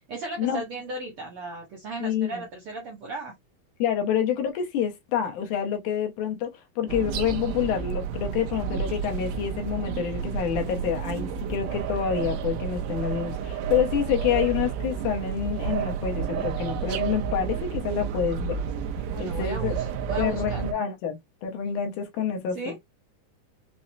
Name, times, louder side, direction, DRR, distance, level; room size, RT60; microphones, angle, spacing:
voice 1, 0.1-3.3 19.1-20.6 22.5-22.7, right 2 dB, 65° right, 1.4 m, -36 dB
voice 2, 2.0-2.4 3.8-18.6 19.2-19.7 20.2-22.8, left 8 dB, 75° left, 2.2 m, -28 dB
sound 1, 6.9-20.7, right 7 dB, 80° right, 2.2 m, -31 dB
5.9 x 2.0 x 2.6 m
omnidirectional pair, 3.8 m